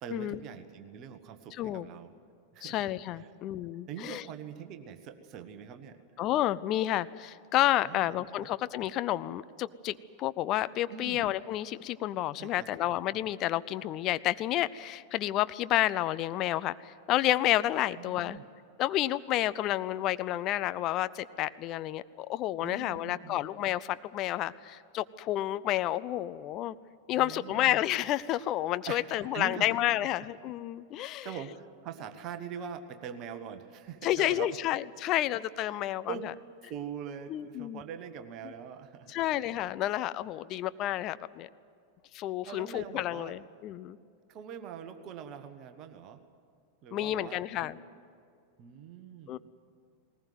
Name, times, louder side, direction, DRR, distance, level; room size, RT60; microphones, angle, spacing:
voice 1, 0.0-2.1 2.5-2.9 3.1-3.4 3.9-6.0 7.8-8.5 10.9-11.2 12.4-12.7 18.0-18.4 22.6-23.5 27.1-27.8 28.9-29.7 31.0-34.6 36.1-36.3 36.6-39.2 42.4-43.4 43.8-44.0 44.3-46.2 46.8-47.8 48.6-49.4, right 8 dB, 35° right, 9 dB, 1.4 m, -43 dB
voice 2, 2.6-4.2 6.2-18.4 18.8-26.8 27.1-31.3 34.0-36.1 37.3-37.8 39.1-41.5 42.1-44.0 46.9-47.8 49.3-49.4, left 14 dB, 35° left, 15 dB, 0.5 m, -30 dB
20.0 x 19.5 x 9.5 m, 2.3 s
figure-of-eight pair, 90°, 0 cm